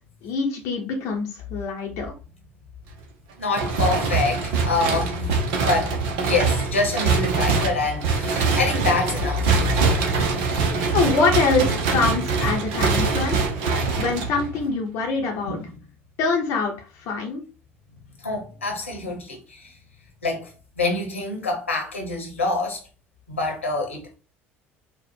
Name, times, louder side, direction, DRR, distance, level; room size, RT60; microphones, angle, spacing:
voice 1, 0.2-2.1 10.6-13.4 14.0-15.6 16.2-17.4, left 4 dB, 55° left, 0.8 m, -24 dB
voice 2, 3.4-5.3 5.6-9.8 15.4-15.8 18.2-19.7 20.2-22.8 23.3-24.1, left 3 dB, 80° left, 1.2 m, -26 dB
sound 1, 3.5-14.7, right 4 dB, 60° right, 0.9 m, -23 dB
4.4 x 2.4 x 4.3 m
figure-of-eight pair, 60°, 7 cm